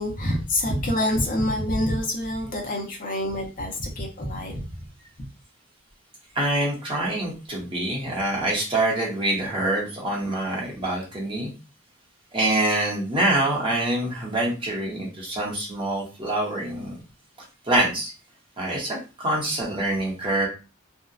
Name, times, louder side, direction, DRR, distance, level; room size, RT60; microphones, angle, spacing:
voice 1, 0.0-4.8 5.2-5.3, left 1 dB, 40° left, 0 dB, 0.6 m, -26 dB
voice 2, 6.3-11.5 12.3-17.0 17.6-18.1 18.6-20.5, right 1 dB, 25° right, -3 dB, 0.8 m, -25 dB
2.6 x 2.0 x 2.3 m, 0.32 s
head